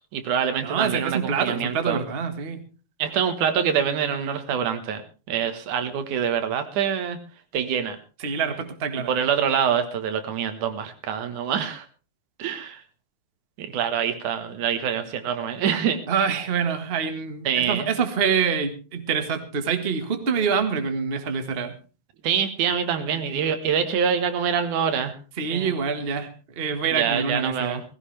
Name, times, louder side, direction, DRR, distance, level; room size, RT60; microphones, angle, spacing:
voice 1, 0.1-2.0 3.0-5.0 5.3-7.2 7.5-8.0 9.1-11.9 12.4-12.8 13.6-16.0 17.5-17.9 22.2-25.1 25.5-25.7 26.9-27.8, right 8 dB, 90° right, 8 dB, 2.9 m, -25 dB
voice 2, 0.6-2.6 8.2-9.1 16.1-21.7 25.4-26.3 26.6-27.8, right 6 dB, 30° right, 7 dB, 1.1 m, -26 dB
18.0 x 16.0 x 3.3 m, 0.34 s
omnidirectional pair, 3.4 m